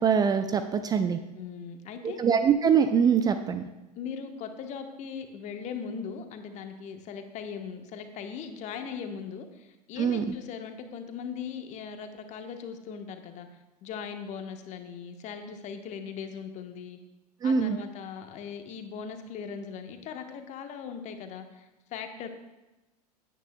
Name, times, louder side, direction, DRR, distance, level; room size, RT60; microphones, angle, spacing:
voice 1, 0.0-1.2 2.2-3.7 10.0-10.2 17.4-17.8, right 7 dB, 20° right, 9 dB, 0.5 m, -23 dB
voice 2, 1.3-2.2 4.0-13.5 13.8-17.0 17.4-22.3, left 6 dB, 35° left, 6 dB, 1.2 m, -39 dB
16.5 x 9.2 x 2.3 m, 1.1 s
figure-of-eight pair, 85°, 20 cm